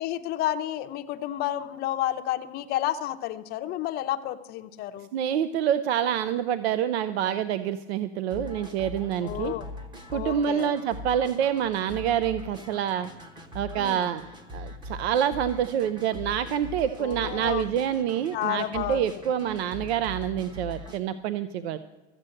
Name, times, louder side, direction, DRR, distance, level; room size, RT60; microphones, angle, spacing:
voice 1, 0.0-5.1 9.2-9.7 10.1-10.7 13.8-14.0 17.0-17.6 18.3-19.7, left 13 dB, 30° left, 8 dB, 0.7 m, -31 dB
voice 2, 5.1-9.5 10.1-13.1 13.5-14.2 14.5-21.8, right 9 dB, 70° right, 13 dB, 0.7 m, -27 dB
sound 1, 8.3-21.0, left 2 dB, 15° right, 0.9 m, -41 dB
14.0 x 7.6 x 7.7 m, 1.2 s
supercardioid pair, 150°, 33 cm